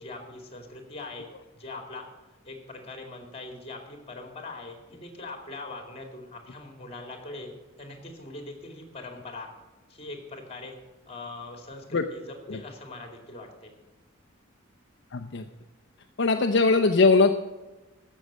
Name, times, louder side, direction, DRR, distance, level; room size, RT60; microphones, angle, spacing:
voice 1, 0.0-2.0 2.4-7.5 7.8-9.5 9.9-10.8 11.1-13.8, left 2 dB, 30° left, 4 dB, 2.5 m, -41 dB
voice 2, 15.1-15.4 16.2-17.3, left 3 dB, 60° left, 4 dB, 0.6 m, -20 dB
14.5 x 6.4 x 7.5 m, 1.2 s
head